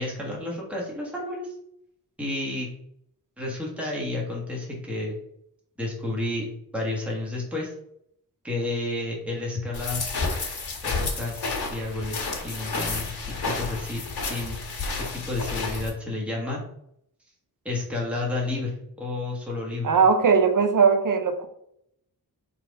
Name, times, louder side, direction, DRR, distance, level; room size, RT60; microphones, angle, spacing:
voice 1, 0.0-1.5 2.2-2.7 3.4-5.2 5.8-7.7 8.4-10.1 10.8-11.4 11.7-14.6 15.1-16.6 17.6-19.9, left 2 dB, 5° right, -4 dB, 1.5 m, -31 dB
sound 1, 9.7-15.9, left 3 dB, 80° left, 1.8 m, -31 dB
voice 2, 19.8-21.5, right 5 dB, 55° right, 7 dB, 0.8 m, -19 dB
4.3 x 4.2 x 5.2 m, 0.72 s
wide cardioid pair, 165°, 37 cm